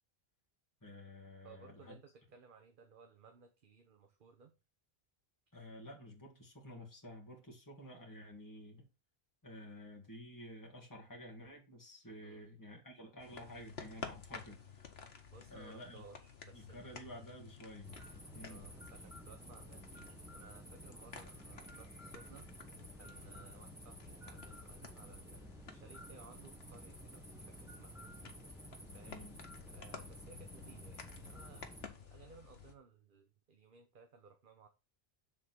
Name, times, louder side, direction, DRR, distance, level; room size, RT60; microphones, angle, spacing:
voice 1, 0.8-2.0 5.5-8.9 9.4-14.9 15.5-16.0 16.5-17.9 18.3-18.7 29.1-29.3, left 1 dB, 20° left, 2.0 m, -51 dB
voice 2, 1.4-4.5 12.2-12.5 15.3-17.0 18.5-22.5 23.0-28.1 28.9-29.2 29.7-31.7 32.0-34.7, right 5 dB, 55° right, 1.0 m, -60 dB
sound 1, 13.2-32.7, left 6 dB, 75° left, 1.4 m, -53 dB
sound 2, 17.8-31.9, right 1 dB, 5° right, 0.8 m, -53 dB
7.8 x 3.7 x 6.0 m
omnidirectional pair, 1.1 m